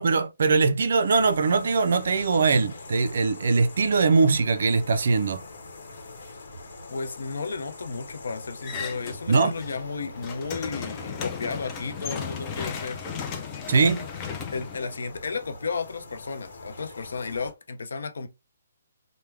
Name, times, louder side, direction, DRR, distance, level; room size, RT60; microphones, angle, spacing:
voice 1, 0.0-5.4 9.3-9.5 13.7-14.1, right 4 dB, 65° right, 0.4 m, -21 dB
sound 1, 1.1-17.5, left 2 dB, 55° left, 1.0 m, -44 dB
voice 2, 6.9-13.0 14.5-18.3, left 4 dB, 75° left, 0.5 m, -33 dB
sound 2, 8.6-9.8 10.1-15.4, left 6 dB, 15° left, 0.4 m, -35 dB
3.4 x 2.1 x 3.2 m
hypercardioid pair, 170°, 0 cm